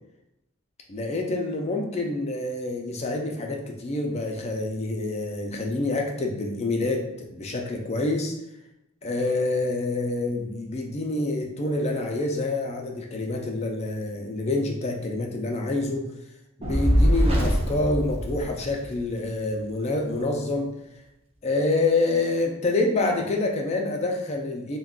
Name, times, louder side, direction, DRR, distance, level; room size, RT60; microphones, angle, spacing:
voice 1, 0.9-8.3 9.0-16.1 16.6-20.7 21.4-24.8, left 2 dB, 30° left, 2 dB, 0.4 m, -27 dB
Fire, 16.6-19.1, equal, 30° right, 0.5 m, -23 dB
2.3 x 2.2 x 3.6 m, 0.86 s
head